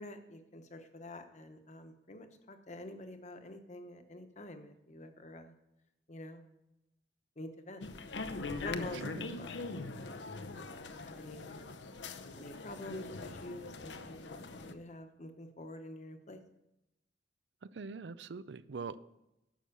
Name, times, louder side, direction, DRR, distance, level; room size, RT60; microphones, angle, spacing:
voice 1, 0.0-5.5 6.1-6.4 7.4-7.8 8.6-9.6 9.9-10.3 10.5-11.7 12.3-16.4, left 1 dB, 40° left, 7 dB, 1.1 m, -48 dB
sound 1, 7.8-14.7, left 3 dB, 85° left, 0.8 m, -42 dB
voice 2, 8.9-9.4 17.7-19.0, right 4 dB, 75° right, 15 dB, 0.5 m, -43 dB
11.5 x 6.4 x 6.8 m, 0.90 s
head